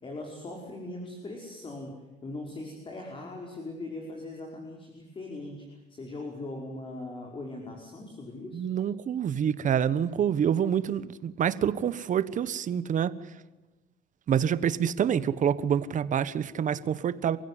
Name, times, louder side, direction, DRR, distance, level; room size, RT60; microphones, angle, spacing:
voice 1, 0.0-1.9 2.2-5.6 5.9-8.7, left 2 dB, 30° left, 1 dB, 5.3 m, -40 dB
voice 2, 8.5-13.1 14.3-17.4, right 8 dB, 50° right, 15 dB, 1.3 m, -27 dB
29.0 x 16.0 x 9.9 m, 1.1 s
cardioid pair, 110°, 17 cm